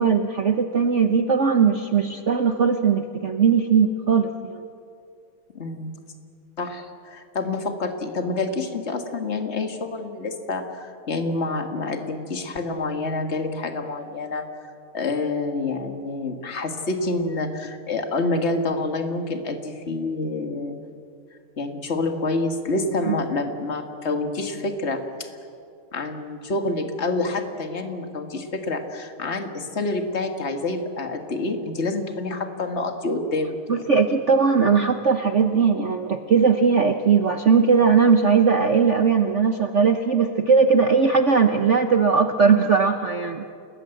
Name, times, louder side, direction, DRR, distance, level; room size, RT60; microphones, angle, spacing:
voice 1, 0.0-4.6 23.1-23.2 33.7-43.4, right 5 dB, 50° right, 6 dB, 0.9 m, -19 dB
voice 2, 5.5-5.9 6.6-14.5 14.9-20.7 21.6-25.3 25.9-33.8, left 2 dB, 30° left, 5 dB, 2.0 m, -27 dB
29.0 x 20.0 x 7.9 m, 2.4 s
omnidirectional pair, 2.3 m